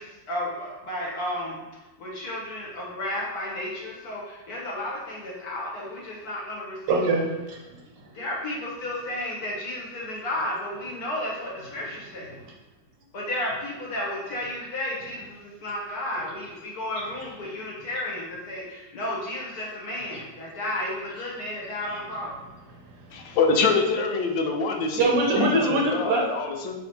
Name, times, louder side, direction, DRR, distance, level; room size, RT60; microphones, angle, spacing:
voice 1, 0.0-1.6 2.0-7.0 8.1-12.4 13.1-22.3, left 1 dB, 60° left, -3 dB, 1.5 m, -33 dB
voice 2, 6.9-8.1 12.3-12.4 20.1-20.2 21.9-22.0 22.7-23.4 24.9-26.2, right 3 dB, 75° right, -1 dB, 1.5 m, -25 dB
voice 3, 23.1-26.8, left 4 dB, 85° left, 3 dB, 1.4 m, -25 dB
5.1 x 3.5 x 2.8 m, 1.1 s
omnidirectional pair, 2.0 m